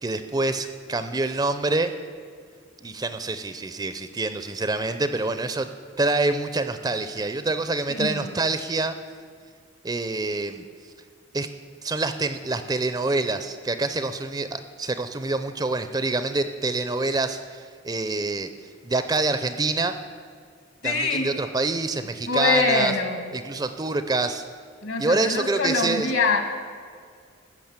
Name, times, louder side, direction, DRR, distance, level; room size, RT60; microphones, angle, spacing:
voice 1, 0.0-1.9 2.8-5.7 6.0-9.0 9.8-10.6 11.3-11.5 11.8-19.9 20.8-22.9 23.3-24.5 25.0-26.1, right 3 dB, 20° right, 10 dB, 0.4 m, -26 dB
voice 2, 7.9-8.3 20.8-21.3 22.3-23.2 24.8-26.4, left 3 dB, 65° left, 5 dB, 1.7 m, -24 dB
15.0 x 6.1 x 8.8 m, 2.1 s
head